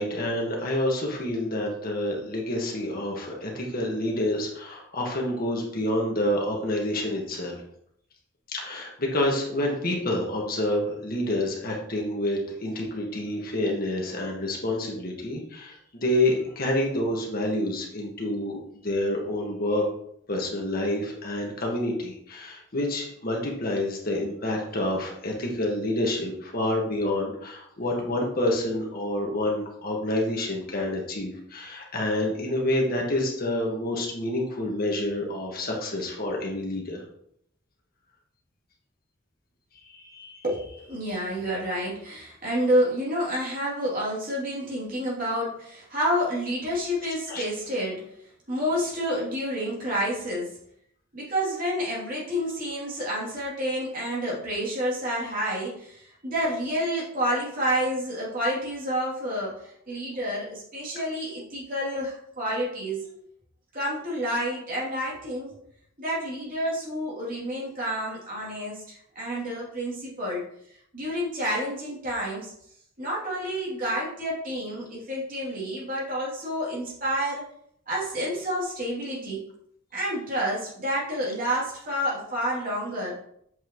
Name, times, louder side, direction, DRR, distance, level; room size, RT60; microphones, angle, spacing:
voice 1, 0.0-7.6 8.5-19.9 20.3-37.0 39.7-40.4 47.3-47.4, left 1 dB, 50° left, -1 dB, 1.7 m, -28 dB
voice 2, 40.4-48.0 48.5-50.5 51.1-63.0 63.7-65.6 66.0-70.4 70.9-72.5 73.0-77.4 77.9-79.4 79.9-83.2, equal, 45° right, -6 dB, 3.0 m, -29 dB
7.8 x 5.7 x 3.1 m, 0.70 s
head